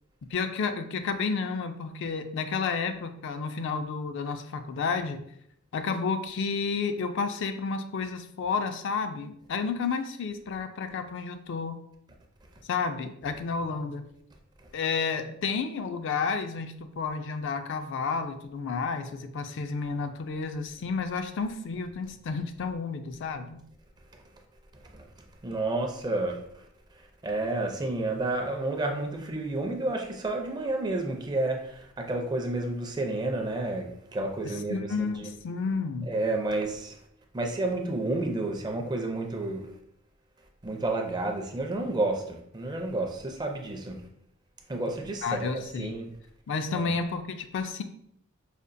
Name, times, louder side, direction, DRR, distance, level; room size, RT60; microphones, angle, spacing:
voice 1, 0.3-5.2 5.7-11.8 12.6-14.1 14.7-23.6 34.4-36.1 45.2-46.0 46.5-47.8, left 5 dB, 60° left, 8 dB, 0.4 m, -31 dB
voice 2, 24.7-25.1 25.4-26.7 26.9-35.3 36.1-37.0 37.3-39.7 40.6-44.0 44.7-45.5 45.8-46.1 46.7-46.9, right 2 dB, 20° right, 3 dB, 0.4 m, -30 dB
5.1 x 2.4 x 2.6 m, 0.71 s
head